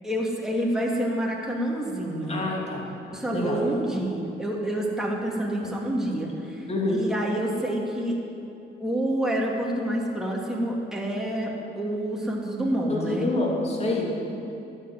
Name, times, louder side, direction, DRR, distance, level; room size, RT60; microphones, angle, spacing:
voice 1, 0.0-2.4 3.1-8.2 8.8-13.3, right 1 dB, ahead, -3 dB, 2.8 m, -28 dB
voice 2, 2.2-2.8 3.3-3.6 5.6-5.7 6.7-7.0 12.9-14.1, left 2 dB, 30° left, -2 dB, 3.0 m, -27 dB
12.5 x 8.0 x 9.4 m, 2.8 s
cardioid pair, 90°, 20 cm